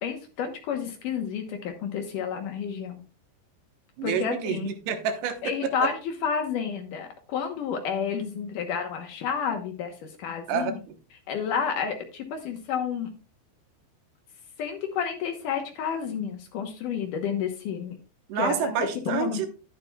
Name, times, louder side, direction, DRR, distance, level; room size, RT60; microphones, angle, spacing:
voice 1, 0.0-3.0 4.0-4.7 5.4-10.8 11.3-13.1 14.6-18.0 18.4-18.7 19.1-19.5, left 7 dB, 70° left, 5 dB, 2.0 m, -30 dB
voice 2, 4.0-5.4 10.5-11.0 18.3-19.5, right 7 dB, 75° right, 6 dB, 3.0 m, -28 dB
11.5 x 10.5 x 2.3 m, 0.34 s
omnidirectional pair, 5.0 m